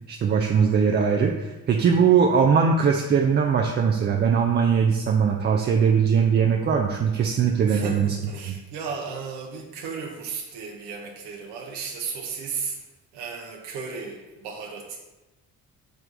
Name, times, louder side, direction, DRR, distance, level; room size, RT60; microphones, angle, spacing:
voice 1, 0.1-8.1, right 6 dB, 25° right, 2 dB, 0.3 m, -20 dB
voice 2, 7.7-12.8 13.1-15.0, right 5 dB, 70° right, 1 dB, 0.7 m, -34 dB
6.4 x 3.2 x 2.5 m, 1.1 s
hypercardioid pair, 45°, 42 cm